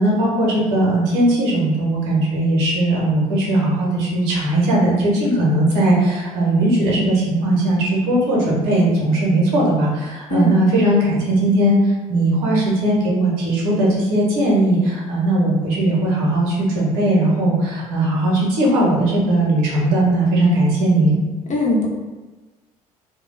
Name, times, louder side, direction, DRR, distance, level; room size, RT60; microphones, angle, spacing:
voice 1, 0.0-21.2, right 1 dB, 70° right, -4 dB, 0.8 m, -18 dB
voice 2, 21.5-21.9, left 2 dB, 40° left, -3 dB, 0.8 m, -20 dB
2.2 x 2.2 x 3.2 m, 1.2 s
hypercardioid pair, 55°, 19 cm